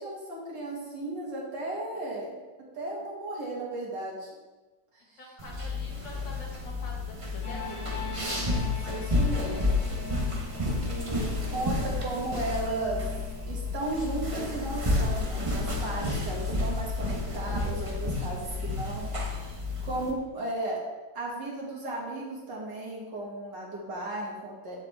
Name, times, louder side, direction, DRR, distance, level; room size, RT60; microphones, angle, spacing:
voice 1, 0.0-2.4 2.7-4.3 4.9-5.2 8.3-9.8 10.8-13.0 13.5-20.8 21.1-24.8, right 2 dB, 65° right, -4 dB, 2.7 m, -35 dB
voice 2, 5.0-8.4, left 2 dB, 65° left, -2 dB, 2.3 m, -45 dB
sound 1, 5.4-20.1, left 2 dB, 25° right, 0.8 m, -31 dB
sound 2, 7.4-20.1, left 2 dB, 15° left, 0.7 m, -45 dB
9.3 x 7.2 x 3.5 m, 1.2 s
omnidirectional pair, 2.1 m